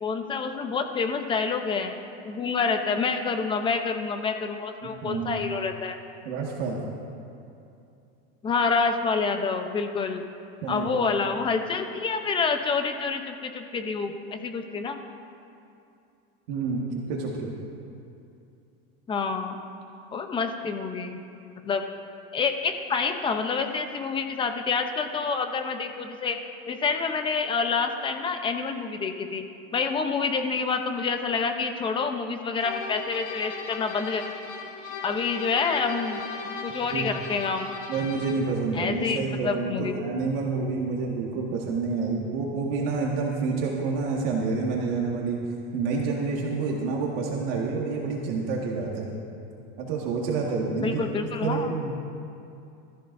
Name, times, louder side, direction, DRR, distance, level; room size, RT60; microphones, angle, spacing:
voice 1, 0.0-2.0 2.2-6.0 8.4-10.2 10.7-15.0 19.1-19.6 20.1-21.2 21.6-21.8 22.3-26.4 26.7-29.4 29.7-34.2 35.0-36.2 36.6-37.7 38.7-39.9 50.8-51.7, left 5 dB, 15° left, 6 dB, 0.7 m, -27 dB
voice 2, 5.0-5.4 6.3-6.8 10.6-11.0 16.5-16.8 17.1-17.5 36.9-37.1 37.9-45.4 45.7-49.1 49.8-51.0 51.4-51.9, right 4 dB, 60° right, -2 dB, 1.8 m, -28 dB
sound 1, 32.6-38.5, left 5 dB, 40° left, 2.3 m, -37 dB
20.5 x 14.0 x 2.6 m, 2.6 s
supercardioid pair, 150°, 32 cm